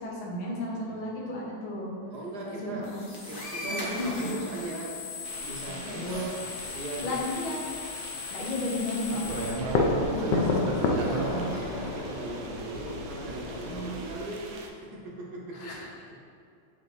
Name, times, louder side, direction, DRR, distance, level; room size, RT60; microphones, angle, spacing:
voice 1, 0.0-1.9 2.5-3.0 3.9-4.3 5.8-6.3 7.0-7.6 8.3-11.6 13.7-14.0 15.5-15.8, left 1 dB, 85° left, -3 dB, 2.0 m, -34 dB
voice 2, 2.1-2.9 3.2-5.0 5.4-7.2 11.0-14.5 14.8-16.2, right 2 dB, 60° right, -2 dB, 1.3 m, -39 dB
sound 1, 2.8-9.5, left 4 dB, 35° left, 1.0 m, -38 dB
sound 2, 5.2-14.7, right 3 dB, 85° right, 1.5 m, -38 dB
sound 3, 9.2-14.2, left 3 dB, 70° left, 1.2 m, -30 dB
7.6 x 5.0 x 3.1 m, 2.5 s
omnidirectional pair, 2.2 m